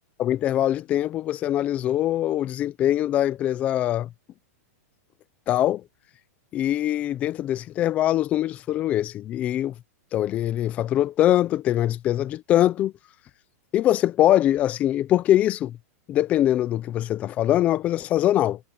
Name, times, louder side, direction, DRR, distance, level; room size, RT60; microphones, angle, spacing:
voice 1, 0.2-4.1 5.5-5.8 6.5-9.7 10.1-12.9 13.7-15.8 16.1-18.6, left 12 dB, 15° left, 0.4 m, -23 dB
supercardioid pair, 175°, 9 cm